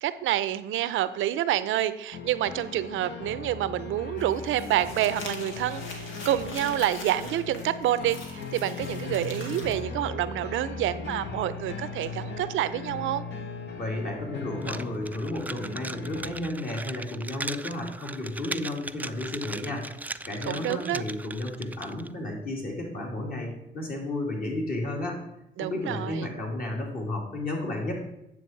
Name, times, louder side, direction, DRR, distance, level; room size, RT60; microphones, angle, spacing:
voice 1, 0.0-13.2 20.5-21.0 25.6-26.3, right 12 dB, 80° right, 14 dB, 0.6 m, -28 dB
sound 1, 2.1-16.3, left 4 dB, 65° left, 1.4 m, -38 dB
Crumpling crinkling, 4.2-9.7, left 3 dB, 85° left, 1.9 m, -43 dB
voice 2, 13.8-19.9 20.3-25.2 25.6-27.9, left 1 dB, 45° left, -1 dB, 3.1 m, -32 dB
sound 2, 14.6-22.1, right 2 dB, 10° right, 0.4 m, -38 dB
9.3 x 7.0 x 4.6 m, 0.86 s
cardioid pair, 90°, 20 cm